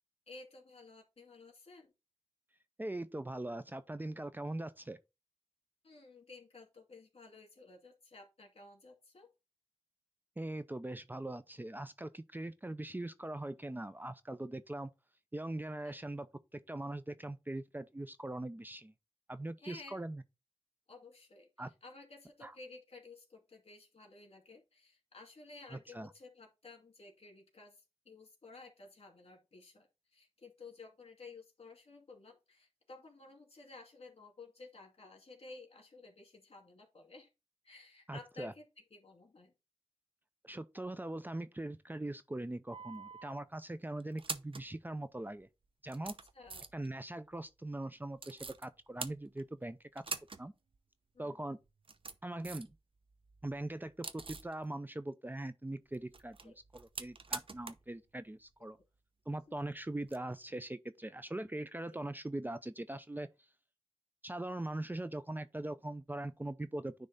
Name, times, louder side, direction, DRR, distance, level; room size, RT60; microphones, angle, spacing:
voice 1, 0.3-1.9 5.8-9.3 15.8-15.9 19.6-20.0 20.9-21.5 21.8-27.8 28.1-37.3 37.6-38.7 38.9-39.5 46.0-46.7 51.1-51.4 56.4-56.5 61.9-62.0, left 3 dB, 65° left, 2.5 m, -54 dB
voice 2, 2.8-5.0 10.4-14.9 15.3-16.3 16.5-18.9 19.3-20.2 21.6-21.7 22.4-22.5 25.7-26.1 38.1-38.5 40.4-45.5 45.8-46.1 46.7-50.0 50.4-50.5 51.2-51.6 52.2-52.7 53.4-58.8 59.3-63.3 64.2-66.9, right 1 dB, 15° right, 0.5 m, -41 dB
sound 1, 42.7-43.3 44.0-44.7 45.4-45.5 45.9-46.9 48.2-48.7 49.0-49.6 50.0-50.4 50.7-50.8 51.7-52.8 53.1-54.5 55.9-57.9 58.2-58.3 60.0-60.2, right 4 dB, 55° right, 0.7 m, -44 dB
9.8 x 3.3 x 4.0 m
wide cardioid pair, 65°, 11 cm